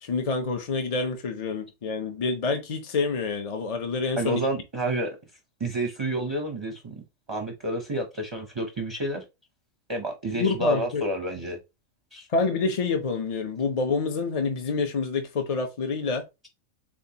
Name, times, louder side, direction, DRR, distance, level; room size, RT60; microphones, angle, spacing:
voice 1, 0.0-4.4 10.4-11.0 12.3-16.2, left 4 dB, 45° left, 0.5 m, -27 dB
voice 2, 4.2-5.2 5.6-7.0 7.3-9.2 9.9-11.6 12.1-12.3, right 1 dB, 30° right, 0.5 m, -29 dB
7.2 x 2.5 x 2.8 m
omnidirectional pair, 1.4 m